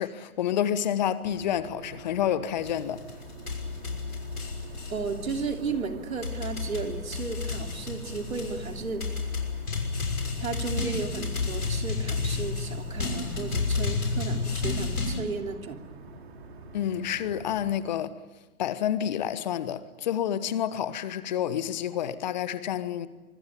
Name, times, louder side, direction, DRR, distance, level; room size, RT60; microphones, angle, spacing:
voice 1, 0.0-3.0 16.7-18.2 18.6-23.1, left 10 dB, 30° left, 1.3 m, -29 dB
sound 1, 1.2-17.8, right 3 dB, 45° right, 4.6 m, -46 dB
sound 2, 2.6-15.2, left 4 dB, 75° left, 6.1 m, -31 dB
voice 2, 4.9-9.0 10.3-15.8, right 4 dB, 65° right, 3.3 m, -34 dB
25.5 x 22.0 x 9.2 m
figure-of-eight pair, 145°, 45 cm